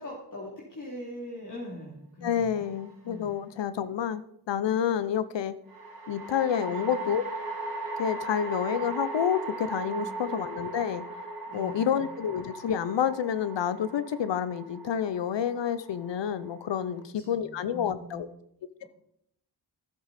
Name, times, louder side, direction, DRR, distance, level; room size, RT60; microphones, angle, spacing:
voice 1, 0.0-2.6 3.0-3.3 10.0-10.2 11.5-12.0 16.9-18.3, left 1 dB, 45° left, -5 dB, 2.8 m, -42 dB
voice 2, 2.2-4.2 4.5-5.5 6.1-7.2 8.0-11.0 11.5-18.3, left 9 dB, 90° left, 14 dB, 0.7 m, -29 dB
sound 1, 2.6-3.3 5.7-17.0, right 3 dB, 50° right, 2.8 m, -38 dB
14.0 x 7.8 x 4.2 m, 0.76 s
cardioid pair, 65°, 42 cm